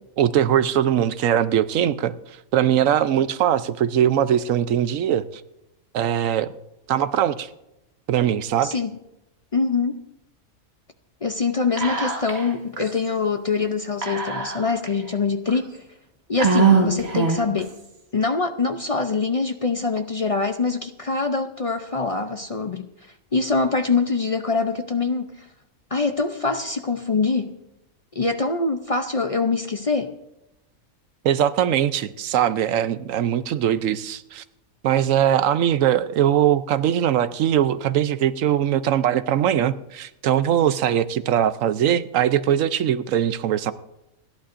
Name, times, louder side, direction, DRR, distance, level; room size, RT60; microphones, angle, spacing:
voice 1, 0.2-2.1 2.5-5.4 5.9-6.5 6.9-7.5 8.1-8.8 31.2-34.4 34.8-43.7, right 10 dB, 70° right, 13 dB, 1.0 m, -21 dB
voice 2, 9.5-10.0 11.2-15.8 16.3-17.7 18.1-22.9 23.3-25.5 25.9-27.6 28.1-30.2, left 4 dB, 45° left, 7 dB, 0.4 m, -24 dB
Whispering, 11.8-12.5 12.8-12.9 14.0-14.9 15.5-15.6 16.4-17.6, right 5 dB, 50° right, 2.0 m, -21 dB
29.0 x 11.5 x 2.6 m, 0.90 s
omnidirectional pair, 1.4 m